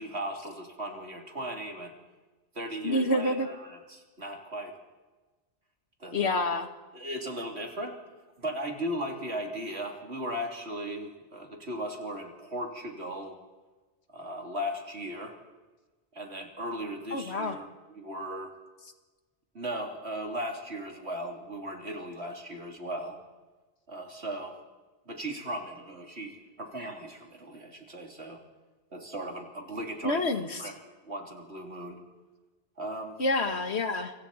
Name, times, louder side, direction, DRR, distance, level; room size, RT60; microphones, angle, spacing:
voice 1, 0.0-1.9 2.6-4.8 6.0-6.4 6.9-8.0 8.4-13.4 14.1-15.4 16.1-18.5 19.5-23.2 23.9-24.6 25.1-28.4 28.9-30.2 30.6-30.7 31.0-32.0 32.8-33.2, right 1 dB, 85° right, 1 dB, 3.6 m, -37 dB
voice 2, 2.8-3.5 6.1-6.7 17.1-17.6 30.0-30.7 33.2-34.1, left 2 dB, 90° left, 7 dB, 2.0 m, -28 dB
29.5 x 25.5 x 4.3 m, 1.2 s
omnidirectional pair, 1.1 m